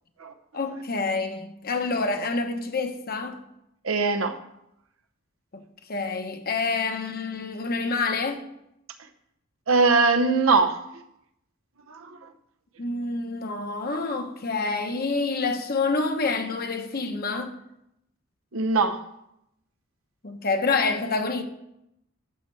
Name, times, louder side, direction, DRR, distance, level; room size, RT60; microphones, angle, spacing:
voice 1, 0.5-3.4 5.5-5.6 5.9-8.5 12.8-17.5 20.2-21.4, left 3 dB, 50° left, 1.0 m, -27 dB
voice 2, 3.8-4.4 9.7-10.8 11.9-12.2 18.5-19.0, right 4 dB, 85° right, 0.8 m, -21 dB
13.0 x 8.0 x 3.3 m
head